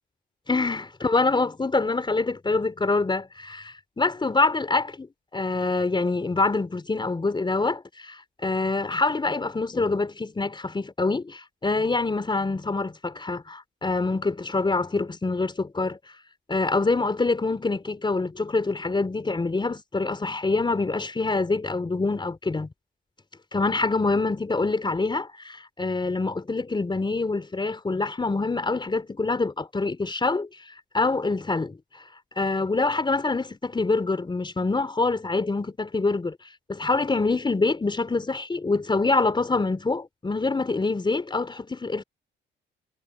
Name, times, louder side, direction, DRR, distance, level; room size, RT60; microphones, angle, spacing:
voice 1, 0.5-5.1 5.3-16.0 16.5-22.7 23.5-30.5 30.9-31.8 32.4-36.4 36.7-42.0, left 3 dB, 25° left, 4.3 m, -25 dB
cardioid pair, 90°, 20 cm